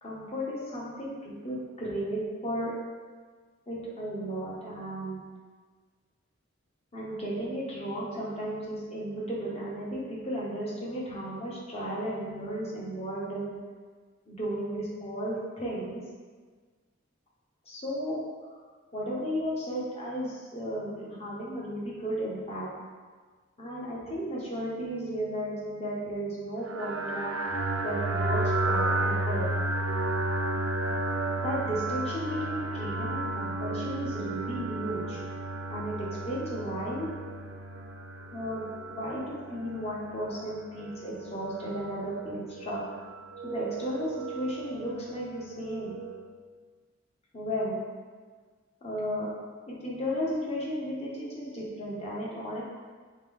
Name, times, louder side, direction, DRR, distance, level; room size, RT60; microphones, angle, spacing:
voice 1, 0.0-2.7 3.7-5.2 6.9-13.6 14.3-16.0 17.7-18.6 18.9-22.7 23.6-27.3 27.8-29.5 31.4-35.2 35.7-37.1 38.3-42.8 43.4-46.0 47.3-47.8 48.8-49.3 49.7-52.6, equal, 30° left, -5 dB, 0.9 m, -34 dB
sound 1, 26.6-46.3, right 2 dB, 90° right, 0.5 m, -33 dB
3.4 x 3.2 x 3.6 m, 1.5 s
head